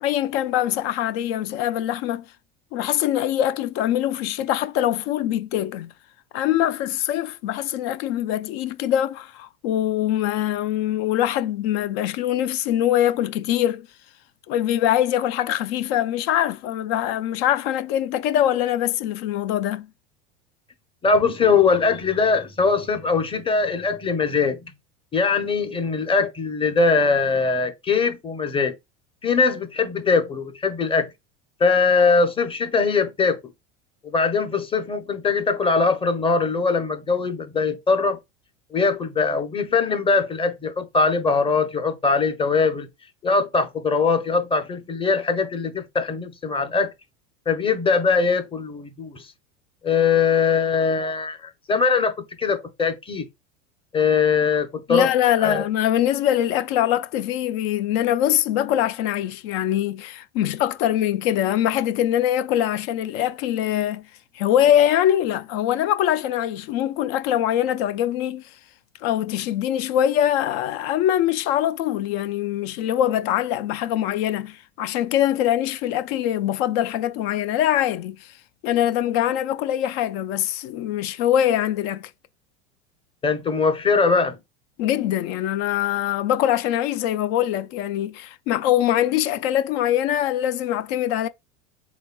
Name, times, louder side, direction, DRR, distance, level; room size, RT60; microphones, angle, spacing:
voice 1, 0.0-2.3 2.7-5.9 6.3-13.9 14.5-19.9 54.9-64.0 64.3-68.4 69.0-78.3 78.6-82.1 84.8-91.3, left 11 dB, 60° left, 0.5 m, -23 dB
voice 2, 21.0-24.6 25.1-28.7 29.2-31.1 31.6-33.4 34.0-38.2 38.7-42.9 43.2-46.9 47.5-49.2 49.8-52.1 52.4-53.3 53.9-55.1 55.4-55.6 83.2-84.4, left 4 dB, 15° left, 0.7 m, -21 dB
4.0 x 3.1 x 2.2 m
hypercardioid pair, 90°, 36 cm